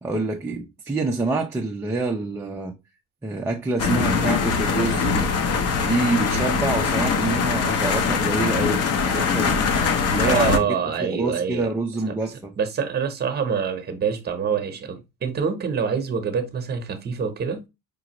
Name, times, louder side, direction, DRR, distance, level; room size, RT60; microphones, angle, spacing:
voice 1, 0.0-2.8 3.2-5.3 5.8-9.6 10.1-10.8 11.0-12.5, right 3 dB, 10° right, 0.3 m, -26 dB
sound 1, 3.8-10.6, left 5 dB, 40° left, 0.7 m, -22 dB
voice 2, 10.2-11.7 12.6-17.6, right 6 dB, 25° right, 0.9 m, -26 dB
5.1 x 2.4 x 2.8 m
cardioid pair, 140°, 38 cm